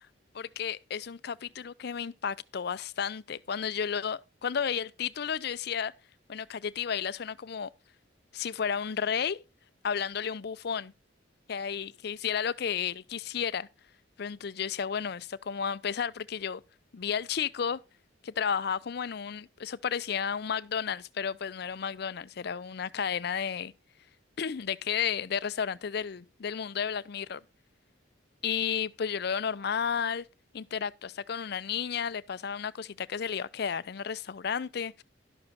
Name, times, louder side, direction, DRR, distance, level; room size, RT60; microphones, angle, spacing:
voice 1, 0.6-5.9 6.3-7.7 8.3-9.4 9.8-10.9 11.5-13.7 14.2-16.6 16.9-17.8 18.2-23.7 24.4-27.4 28.4-30.2 30.5-35.0, left 7 dB, 55° left, 0.5 m, -32 dB
11.5 x 6.6 x 4.1 m
head